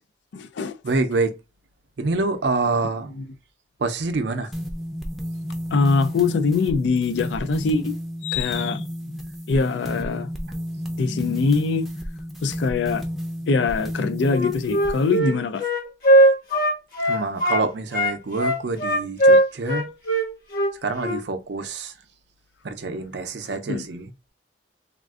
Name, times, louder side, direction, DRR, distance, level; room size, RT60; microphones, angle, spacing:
voice 1, 0.3-0.8 3.1-3.3 5.7-7.9 8.2-8.9 9.5-10.3 11.0-11.9 12.4-13.0 13.5-15.6 23.5-23.9, left 4 dB, 70° left, 0.4 m, -23 dB
voice 2, 0.8-1.3 2.0-3.1 3.8-4.5 17.0-19.8 20.8-21.9 22.6-24.1, right 3 dB, 65° right, 0.5 m, -26 dB
sound 1, 4.5-15.2, equal, ahead, 0.5 m, -32 dB
Wind instrument woodwind instrument, 14.2-17.7 17.9-21.2, right 1 dB, 50° left, 1.1 m, -19 dB
3.5 x 2.4 x 2.3 m
head